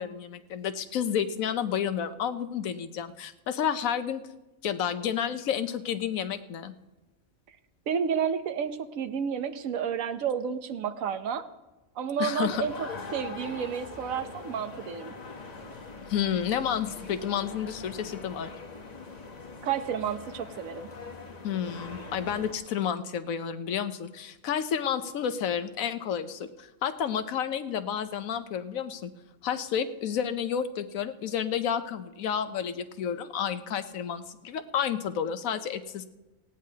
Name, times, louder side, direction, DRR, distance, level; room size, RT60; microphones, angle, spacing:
voice 1, 0.0-4.2 4.6-6.7 12.2-12.6 16.1-18.5 21.4-29.1 29.4-36.1, left 8 dB, 90° left, 10 dB, 1.2 m, -30 dB
voice 2, 7.9-11.5 12.0-15.1 19.6-20.9, right 7 dB, 80° right, 10 dB, 1.2 m, -31 dB
sound 1, 12.4-22.5, left 4 dB, 35° left, 1.1 m, -42 dB
18.5 x 16.5 x 2.8 m, 1.1 s
omnidirectional pair, 1.4 m